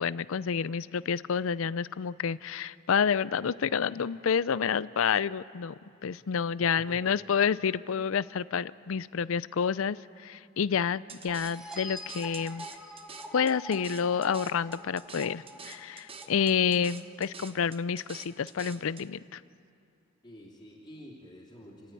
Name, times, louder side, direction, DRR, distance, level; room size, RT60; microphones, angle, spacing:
voice 1, 0.0-5.7 6.0-12.7 13.3-19.4, left 7 dB, 65° left, 18 dB, 0.4 m, -29 dB
voice 2, 6.7-7.2 20.2-21.9, equal, 20° left, -6 dB, 3.0 m, -49 dB
sound 1, 11.1-19.1, right 5 dB, 25° right, 0.9 m, -47 dB
sound 2, 11.3-16.8, equal, ahead, 1.4 m, -45 dB
29.5 x 12.5 x 9.2 m, 2.5 s
head